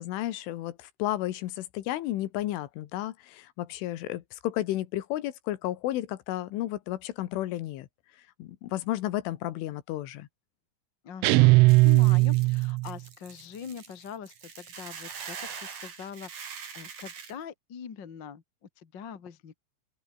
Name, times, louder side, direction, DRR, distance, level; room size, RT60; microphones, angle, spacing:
voice 1, 0.0-7.9 8.4-10.3, left 14 dB, 75° left, 3.7 m, -32 dB
voice 2, 11.0-19.6, left 7 dB, 50° left, 1.3 m, -43 dB
sound 1, 11.2-12.9, right 23 dB, 80° right, 3.0 m, -19 dB
Hiss / Boiling, 11.7-17.3, right 6 dB, 40° right, 4.4 m, -43 dB
open air
omnidirectional pair, 5.8 m